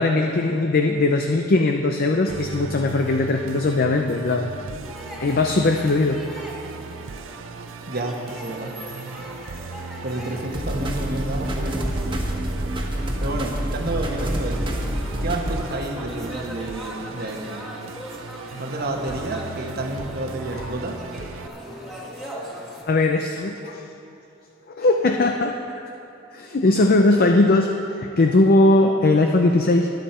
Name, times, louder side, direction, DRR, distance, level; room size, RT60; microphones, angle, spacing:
voice 1, 0.0-4.5 5.2-6.2 20.5-20.7 22.9-23.9 24.7-25.6 26.3-29.9, left 2 dB, 50° left, 4 dB, 0.5 m, -19 dB
Musical instrument, 2.3-21.5, right 4 dB, 80° right, 0.5 m, -37 dB
sound 1, 4.8-22.8, equal, ahead, 1.7 m, -40 dB
voice 2, 7.9-8.7 10.0-11.8 13.2-14.8 15.2-17.6 18.5-21.0 22.1-22.3, right 1 dB, 50° right, 2 dB, 1.2 m, -30 dB
sound 2, 10.5-15.6, equal, 25° right, 1.3 m, -27 dB
21.5 x 7.4 x 4.3 m, 2.7 s
head